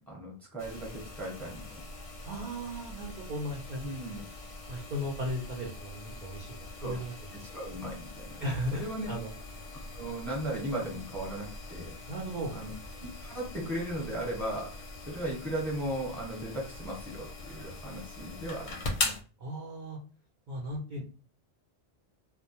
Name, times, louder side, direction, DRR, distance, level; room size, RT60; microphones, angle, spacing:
voice 1, 0.0-1.8 3.8-4.2 6.8-6.9 7.4-8.4 8.7-9.1 9.9-11.9 12.5-12.7 13.0-14.7 15.1-19.1, right 1 dB, ahead, -3 dB, 0.9 m, -37 dB
sound 1, 0.6-19.2, left 3 dB, 55° left, 0.6 m, -42 dB
voice 2, 2.2-3.8 4.2-4.3 4.7-7.1 8.4-9.3 12.1-12.6 19.4-20.0 20.5-21.0, equal, 55° right, -3 dB, 0.6 m, -36 dB
2.2 x 2.1 x 2.7 m, 0.37 s
omnidirectional pair, 1.1 m